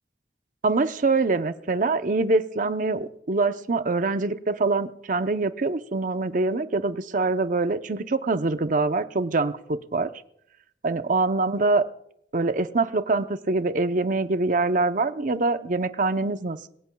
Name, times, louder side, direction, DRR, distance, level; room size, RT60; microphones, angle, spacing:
voice 1, 0.6-10.1 10.8-11.8 12.3-16.7, right 3 dB, 50° right, 10 dB, 0.7 m, -24 dB
22.0 x 18.0 x 2.3 m, 0.74 s
head